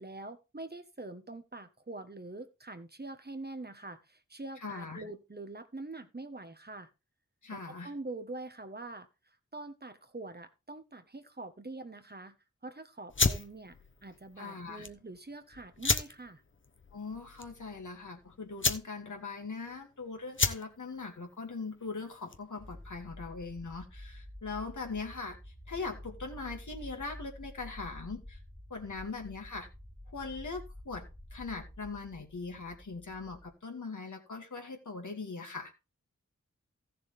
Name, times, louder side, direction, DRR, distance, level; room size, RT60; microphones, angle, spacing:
voice 1, 0.0-6.9 7.5-9.1 9.5-12.4 12.6-16.4, right 2 dB, 35° right, 1.4 m, -44 dB
voice 2, 4.6-5.0 7.4-7.9 14.4-14.8 16.9-25.4 25.7-28.4 28.7-29.7 30.1-35.7, left 4 dB, 75° left, 2.5 m, -41 dB
sound 1, 13.1-22.6, left 4 dB, 40° left, 1.1 m, -34 dB
sound 2, 22.6-33.6, left 1 dB, ahead, 1.1 m, -49 dB
14.5 x 7.2 x 3.5 m
cardioid pair, 40°, 30 cm